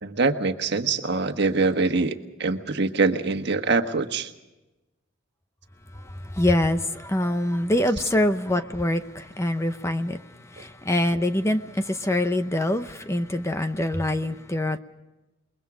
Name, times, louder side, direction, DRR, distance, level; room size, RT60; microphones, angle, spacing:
voice 1, 0.0-4.3, right 3 dB, 60° right, 1.5 m, -24 dB
voice 2, 6.3-10.2 10.5-14.8, left 1 dB, 15° left, 0.8 m, -24 dB
28.5 x 22.5 x 5.0 m
head